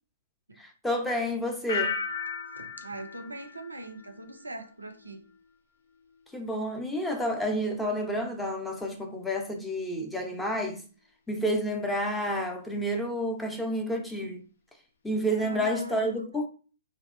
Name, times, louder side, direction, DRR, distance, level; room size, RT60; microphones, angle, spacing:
voice 1, 0.6-1.9 6.3-10.8 11.3-14.4 15.0-16.5, equal, 5° left, 0.6 m, -30 dB
sound 1, 1.7-4.5 4.8-5.3, left 6 dB, 65° left, 0.4 m, -36 dB
voice 2, 2.6-5.2 15.4-16.2, right 1 dB, 90° right, 0.4 m, -40 dB
2.7 x 2.1 x 2.5 m
figure-of-eight pair, 120°, 0 cm